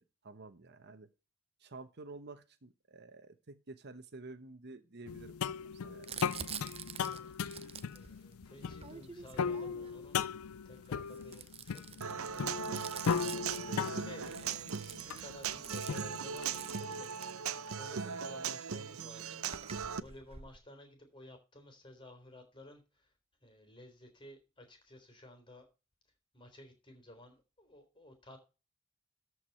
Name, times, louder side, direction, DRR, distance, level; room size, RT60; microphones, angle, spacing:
voice 1, 0.2-1.1 1.6-5.6 5.8-6.1 13.7-14.0, right 3 dB, 50° right, 10 dB, 1.1 m, -50 dB
sound 1, 5.1-16.6, left 6 dB, 90° left, 0.4 m, -38 dB
Crumpling crinkling, 6.0-10.1 10.8-17.9 18.7-18.8 19.0-20.6, right 7 dB, 30° right, 0.7 m, -48 dB
voice 2, 6.9-7.3 7.9-10.2 10.6-13.1 13.3-17.1 17.8-19.4 20.0-23.1 23.4-25.7 26.3-28.4, left 1 dB, 25° left, 6 dB, 3.8 m, -55 dB
Human voice / Acoustic guitar, 12.0-20.0, right 6 dB, 80° right, 0.8 m, -39 dB
13.5 x 4.9 x 5.6 m, 0.31 s
head